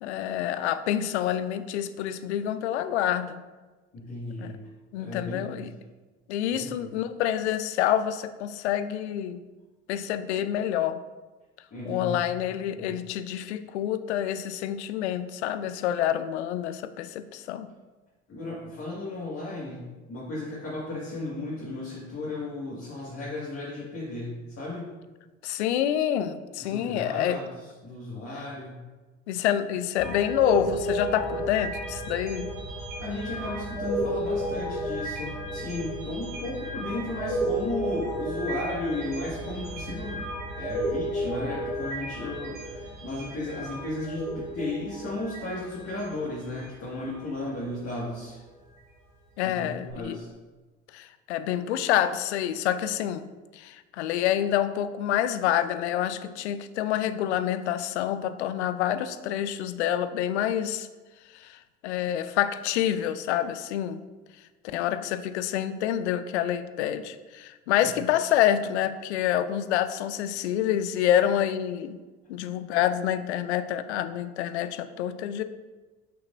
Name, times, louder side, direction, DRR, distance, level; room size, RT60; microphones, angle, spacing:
voice 1, 0.0-3.4 4.4-4.5 4.9-5.7 6.3-9.4 9.9-11.0 11.9-17.7 25.4-27.4 29.3-32.5 49.4-50.2 50.9-53.2 53.5-60.9 61.3-64.0 64.6-72.0 72.3-75.4, left 11 dB, 75° left, 12 dB, 0.5 m, -27 dB
voice 2, 3.9-4.6 5.0-5.7 6.5-6.9 11.7-12.2 12.7-13.0 18.3-24.9 26.6-28.8 33.0-40.3 40.6-48.4 49.4-50.3 67.8-67.9, left 2 dB, 40° left, -7 dB, 1.9 m, -35 dB
sound 1, 30.0-47.2 47.6-47.9 49.9-50.0, right 1 dB, 80° right, 1.8 m, -33 dB
6.8 x 5.8 x 2.6 m, 1.2 s
figure-of-eight pair, 55°, 34 cm